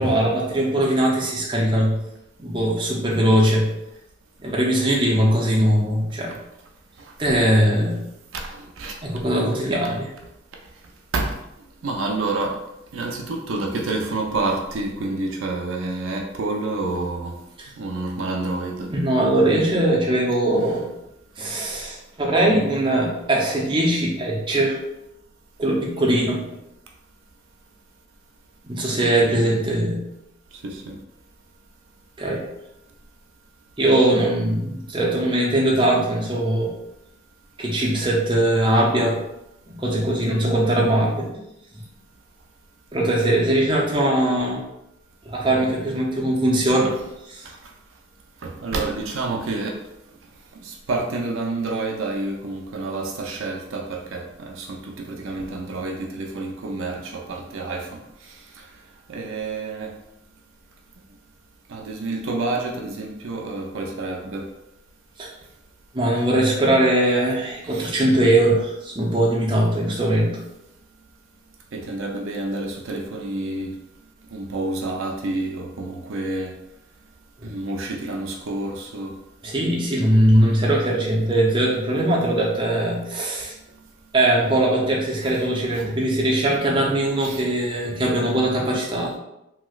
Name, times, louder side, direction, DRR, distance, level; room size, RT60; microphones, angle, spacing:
voice 1, 0.0-2.0 2.4-3.7 4.4-6.4 7.2-8.1 9.0-10.1 17.6-17.7 18.9-20.9 21.4-24.8 25.6-26.4 28.6-30.1 32.2-32.4 33.8-36.8 37.6-39.2 39.7-41.4 42.9-44.6 45.3-46.9 47.3-47.5 65.2-65.3 65.9-70.4 77.4-77.5 79.4-83.5 84.1-89.2, right 1 dB, 25° right, -3 dB, 0.6 m, -21 dB
voice 2, 11.8-12.6 12.9-17.3 17.8-18.9 20.6-20.8 29.2-29.4 30.6-30.9 48.4-49.7 50.6-54.8 55.1-58.0 59.1-59.9 61.7-64.4 67.6-67.9 71.7-73.7 74.3-76.5 77.4-79.1 85.2-85.4 85.7-85.8 87.2-87.4, right 2 dB, 85° right, 1 dB, 0.5 m, -28 dB
3.0 x 2.9 x 2.3 m, 0.86 s
head